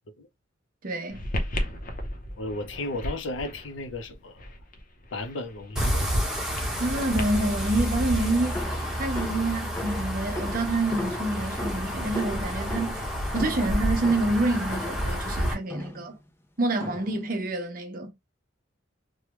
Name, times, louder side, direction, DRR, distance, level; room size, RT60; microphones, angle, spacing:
voice 1, 0.8-1.2 6.8-13.0 13.3-16.2 16.6-18.1, right 2 dB, 45° right, 0.8 m, -27 dB
sound 1, 1.1-12.7, left 1 dB, 45° left, 0.7 m, -38 dB
voice 2, 2.4-4.3 5.1-6.3, left 2 dB, 85° left, 0.6 m, -34 dB
sound 2, 5.8-15.5, equal, 5° right, 1.2 m, -29 dB
sound 3, 8.5-15.2 15.7-16.2 16.8-17.3, left 1 dB, 15° left, 0.5 m, -38 dB
3.2 x 2.2 x 3.0 m
head